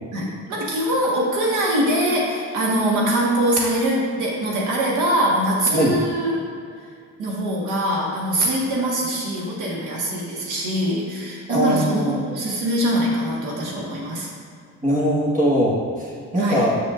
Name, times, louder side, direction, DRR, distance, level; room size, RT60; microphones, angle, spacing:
voice 1, 0.1-6.4 7.2-14.3 16.4-16.7, right 1 dB, 85° right, -3 dB, 1.5 m, -23 dB
voice 2, 11.5-12.2 14.8-16.8, equal, 25° right, -6 dB, 1.3 m, -21 dB
7.0 x 6.4 x 2.5 m, 2.3 s
cardioid pair, 90°, 30 cm